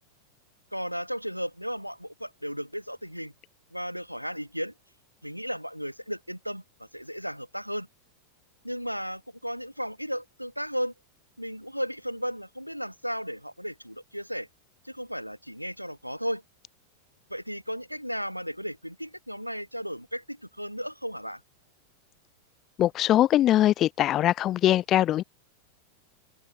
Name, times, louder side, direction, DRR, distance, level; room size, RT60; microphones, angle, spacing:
voice 1, 0.7-3.3 3.7-4.7 5.2-7.9 8.6-10.9 11.4-14.5 14.8-16.4 17.3-21.4, equal, 90° right, 0.4 m, -34 dB
voice 2, 22.8-25.2, left 13 dB, 30° left, 0.3 m, -22 dB
figure-of-eight pair, 90°, 0 cm